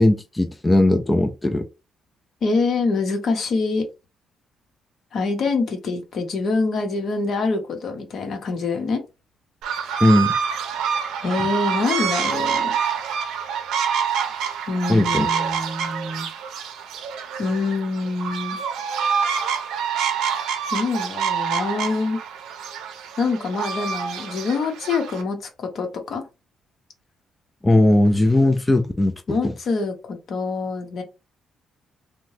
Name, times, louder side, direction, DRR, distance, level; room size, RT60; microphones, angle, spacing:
voice 1, 0.0-1.7 10.0-10.3 14.9-15.3 27.6-29.1 29.4-29.5, left 1 dB, 15° left, 0.3 m, -18 dB
voice 2, 2.4-3.8 5.1-9.0 11.2-12.7 14.7-16.3 17.4-18.6 20.7-22.2 23.2-25.4 25.7-26.2 29.3-31.0, left 3 dB, 60° left, 0.8 m, -25 dB
sound 1, 9.6-25.2, right 7 dB, 85° right, 0.5 m, -26 dB
2.7 x 2.1 x 3.1 m
cardioid pair, 90°, 0 cm